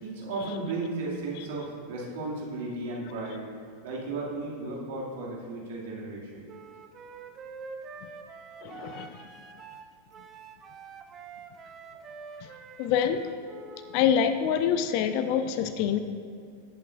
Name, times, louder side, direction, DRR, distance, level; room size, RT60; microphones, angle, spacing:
voice 1, 0.0-3.5 3.8-6.5, right 2 dB, 55° right, -3 dB, 2.4 m, -35 dB
Wind instrument woodwind instrument, 6.5-14.0, right 5 dB, 25° right, 0.8 m, -46 dB
voice 2, 8.6-9.2 12.4-12.5 12.8-13.3 13.9-16.0, left 8 dB, 45° left, 10 dB, 0.5 m, -26 dB
17.5 x 8.4 x 2.6 m, 2.3 s
figure-of-eight pair, 90°, 0 cm